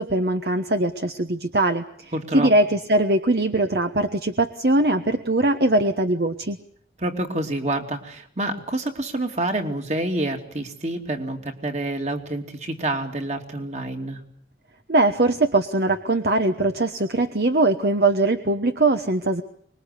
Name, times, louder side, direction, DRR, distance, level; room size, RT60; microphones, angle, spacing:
voice 1, 0.0-6.6 14.9-19.4, right 2 dB, 60° right, 7 dB, 1.2 m, -21 dB
voice 2, 2.1-2.5 7.0-14.2, right 1 dB, 40° right, 4 dB, 2.8 m, -28 dB
25.0 x 21.5 x 8.2 m, 0.63 s
head